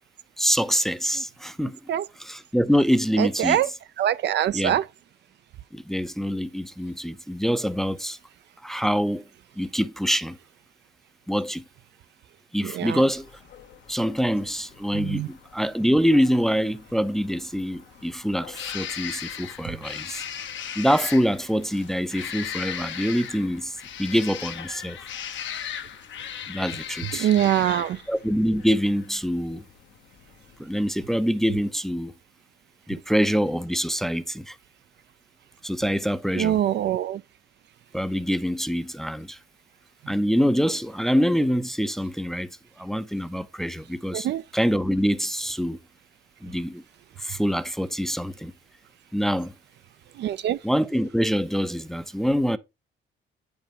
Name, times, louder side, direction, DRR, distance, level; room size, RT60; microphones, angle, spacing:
voice 1, 0.4-1.8 2.2-3.6 4.5-4.8 5.7-8.2 8.6-9.2 9.6-10.4 11.3-11.6 12.5-13.3 13.9-20.2 20.8-25.1 26.5-27.3 28.1-29.6 30.6-32.1 32.9-34.6 35.6-36.6 37.9-39.4 40.1-44.3 44.5-45.8 46.4-46.8 47.2-48.5 49.1-49.5 50.6-52.6, equal, ahead, 0.5 m, -25 dB
voice 2, 3.2-3.7 4.0-4.9 12.6-13.0 14.9-15.3 27.1-28.0 36.3-37.2 44.1-44.4 50.2-50.6, right 11 dB, 60° right, 0.4 m, -24 dB
sound 1, 13.1-31.2, left 9 dB, 70° left, 0.9 m, -39 dB
8.7 x 5.3 x 2.8 m
cardioid pair, 90°, 20 cm